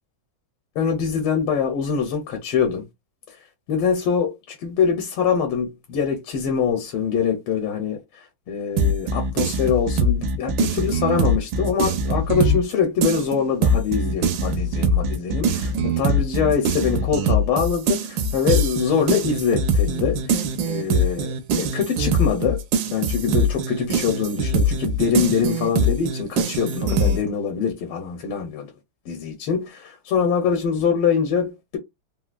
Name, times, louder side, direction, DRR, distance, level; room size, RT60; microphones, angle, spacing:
voice 1, 0.7-2.8 3.3-3.4 3.7-28.7 29.1-31.8, left 6 dB, 85° left, 1.5 m, -24 dB
sound 1, 8.8-12.7 13.0-27.2, right 1 dB, 75° right, 1.2 m, -22 dB
3.8 x 2.4 x 2.2 m
omnidirectional pair, 2.2 m